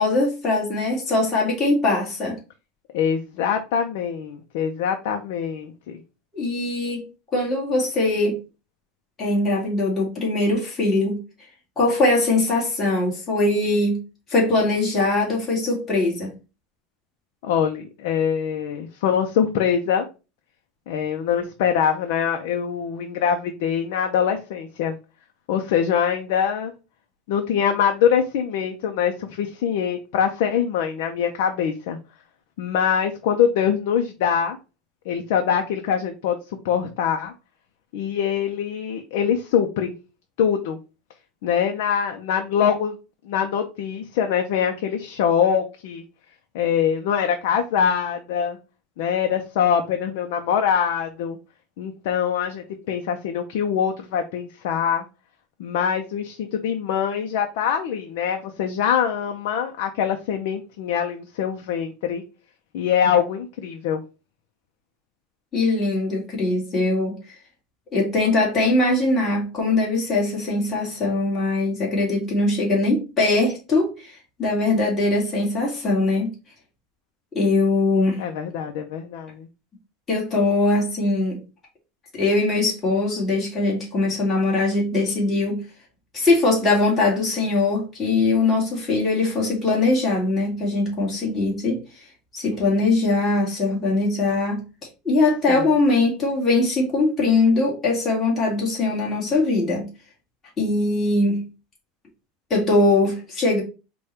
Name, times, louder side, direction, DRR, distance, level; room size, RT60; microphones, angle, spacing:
voice 1, 0.0-2.4 6.3-7.0 7.3-8.4 9.2-11.2 11.8-14.0 14.3-16.3 65.5-67.2 67.9-76.3 77.3-78.2 80.1-81.4 82.1-85.6 86.1-91.8 92.3-94.6 95.0-99.9 100.6-101.4 102.5-103.6, left 2 dB, 20° left, 1.9 m, -21 dB
voice 2, 2.9-6.0 17.4-20.1 20.9-24.9 25.5-26.7 27.3-32.0 32.6-34.6 35.1-36.4 36.6-37.3 37.9-39.9 40.4-40.8 41.4-42.9 43.3-46.0 46.5-48.6 49.0-51.4 51.8-55.0 55.6-62.2 62.7-64.0 78.2-79.5 95.5-95.7, left 8 dB, 70° left, 0.6 m, -23 dB
5.0 x 2.3 x 4.2 m
supercardioid pair, 160°, 0 cm